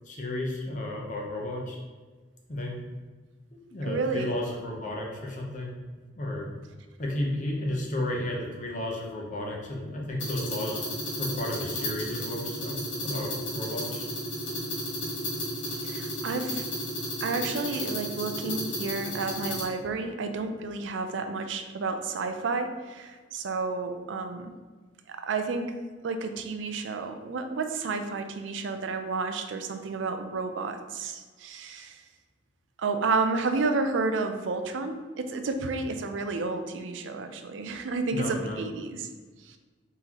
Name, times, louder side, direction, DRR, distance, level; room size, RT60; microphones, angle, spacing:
voice 1, 0.1-1.8 2.5-2.8 3.5-5.8 6.1-6.5 7.0-10.8 11.2-14.1 38.1-38.6, left 1 dB, 40° left, -2 dB, 0.8 m, -33 dB
voice 2, 3.9-4.3 15.7-16.7 17.2-24.5 25.1-25.7 26.0-32.0 32.8-39.1 39.4-39.6, right 4 dB, 75° right, 7 dB, 0.4 m, -31 dB
sound 1, 10.2-19.6, left 1 dB, 80° left, 1.2 m, -33 dB
4.1 x 3.7 x 2.9 m, 1.4 s
head